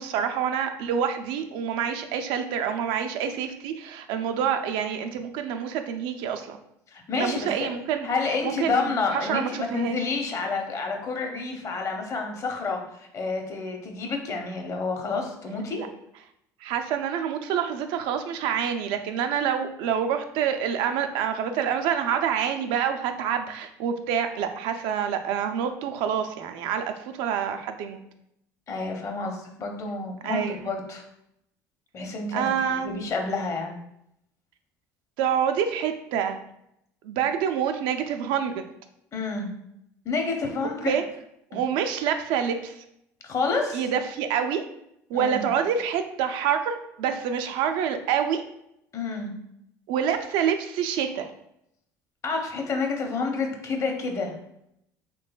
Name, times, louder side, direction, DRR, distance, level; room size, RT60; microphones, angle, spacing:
voice 1, 0.0-6.6 7.2-8.1 8.4-10.0 15.8-15.9 16.6-28.0 30.2-30.7 32.3-32.9 35.2-36.4 37.0-38.6 40.9-41.0 41.5-42.7 43.7-44.7 45.1-48.4 49.9-51.3, right 8 dB, 70° right, 7 dB, 0.4 m, -27 dB
voice 2, 6.9-7.7 8.0-15.8 28.7-31.0 31.9-32.5 32.8-33.7 39.1-39.5 40.0-41.0 43.2-43.8 45.1-45.5 48.9-49.3 52.2-54.3, left 4 dB, 40° left, 3 dB, 0.7 m, -29 dB
3.7 x 3.2 x 2.3 m, 0.77 s
supercardioid pair, 85°, 8 cm